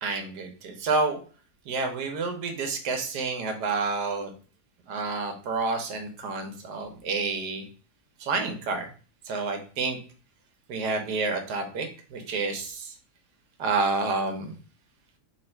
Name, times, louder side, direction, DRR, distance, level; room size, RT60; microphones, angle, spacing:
voice 1, 0.0-1.2 1.7-4.3 4.9-7.6 8.2-8.9 9.3-10.0 10.7-12.9 13.6-14.6, right 3 dB, 85° right, 5 dB, 1.5 m, -29 dB
3.3 x 3.2 x 4.4 m, 0.38 s
omnidirectional pair, 1.7 m